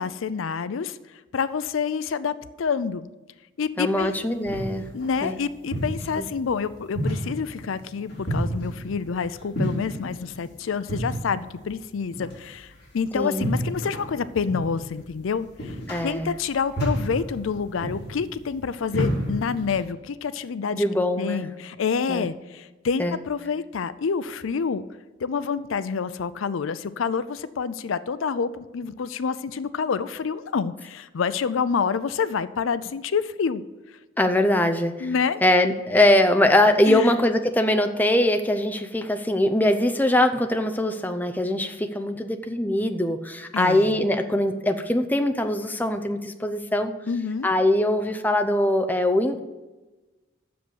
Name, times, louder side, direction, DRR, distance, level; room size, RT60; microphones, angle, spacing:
voice 1, 0.0-3.1 3.6-4.2 4.9-15.8 16.0-20.8 21.2-24.8 25.2-33.6 35.0-35.4 36.9-37.1 43.5-44.1 47.1-47.5, left 5 dB, 85° left, 15 dB, 0.5 m, -28 dB
voice 2, 3.8-4.9 5.2-5.4 6.2-6.3 13.1-13.4 15.9-16.3 20.7-21.5 22.1-22.3 23.0-23.2 34.2-35.1 35.4-46.9 47.4-49.4, left 1 dB, 10° left, 5 dB, 0.6 m, -22 dB
sound 1, 3.9-19.8, equal, 50° left, 4.1 m, -32 dB
7.7 x 6.8 x 8.0 m, 1.2 s
head